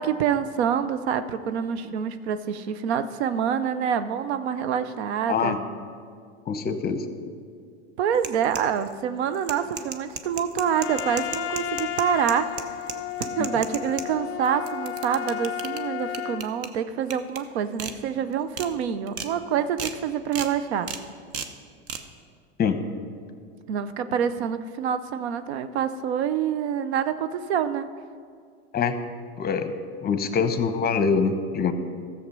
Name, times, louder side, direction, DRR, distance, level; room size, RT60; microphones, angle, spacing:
voice 1, 0.0-5.6 8.0-12.8 13.2-20.9 23.7-27.9, right 8 dB, 75° right, 12 dB, 0.7 m, -26 dB
voice 2, 6.5-7.0 13.4-13.6 22.6-22.8 28.7-29.0 29.4-29.7 30.0-31.7, left 6 dB, 30° left, 9 dB, 0.9 m, -24 dB
sound 1, 8.1-8.9 9.3-14.1 14.4-15.8 16.1-16.7 17.1-17.4 17.8-17.9 18.3-18.7 19.1-19.3 19.8-20.0 20.3-20.5 20.9-21.0 21.3-21.5 21.9-22.0, right 7 dB, 45° right, 0.9 m, -34 dB
Trumpet, 10.7-16.5, left 10 dB, 45° left, 0.7 m, -33 dB
14.0 x 7.2 x 5.4 m, 2.1 s
hypercardioid pair, 95°, 33 cm